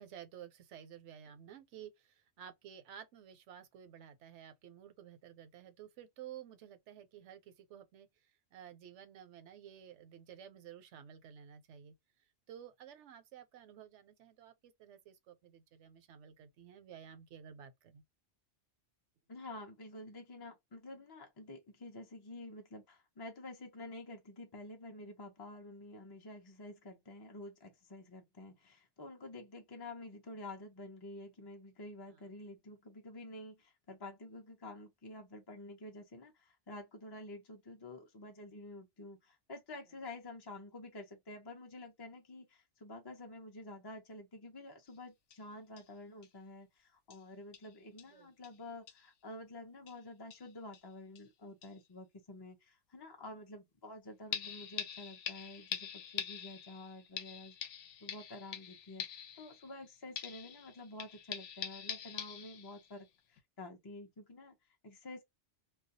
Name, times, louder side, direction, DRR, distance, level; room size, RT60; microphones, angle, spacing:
voice 1, 0.0-8.1 8.5-11.9 12.5-18.0 32.1-32.2 48.1-48.3, right 9 dB, 85° right, 0.9 m, -53 dB
voice 2, 19.3-57.5 58.0-65.3, left 2 dB, 40° left, 0.3 m, -49 dB
sound 1, 44.9-45.0 45.3-45.4 45.8-45.9 46.2-46.3 47.1-47.2 47.5-47.7 48.0-48.1 48.4-48.6 48.9-49.1 49.9-50.0 50.3-50.8 51.2-51.3 51.6-51.7 54.3-59.9 60.2-63.0 63.4-63.5, left 8 dB, 85° left, 0.9 m, -44 dB
2.3 x 2.2 x 2.6 m
omnidirectional pair, 1.2 m